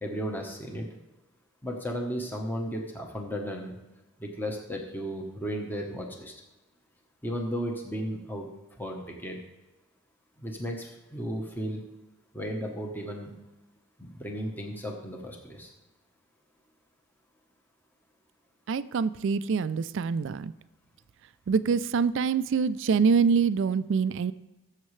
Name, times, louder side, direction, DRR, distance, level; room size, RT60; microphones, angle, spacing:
voice 1, 0.0-0.9 1.6-3.8 4.2-6.3 7.2-8.5 8.8-9.4 10.4-11.8 12.3-13.3 14.0-15.7, equal, 10° left, 1 dB, 1.0 m, -34 dB
voice 2, 18.7-20.5 21.5-24.3, right 5 dB, 55° right, 16 dB, 0.3 m, -25 dB
16.0 x 7.4 x 3.2 m, 1.1 s
head